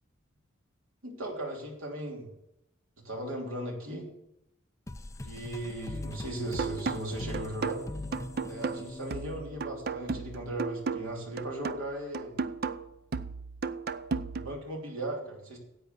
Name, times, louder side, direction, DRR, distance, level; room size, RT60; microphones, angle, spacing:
voice 1, 1.0-2.3 3.0-4.1 5.2-7.8 8.4-12.4 14.3-15.6, right 1 dB, 80° right, 0 dB, 3.2 m, -37 dB
sound 1, 4.9-10.2, left 2 dB, 15° left, 0.4 m, -42 dB
sound 2, 6.6-14.6, right 4 dB, 45° right, 0.5 m, -35 dB
10.0 x 8.4 x 6.7 m, 0.87 s
head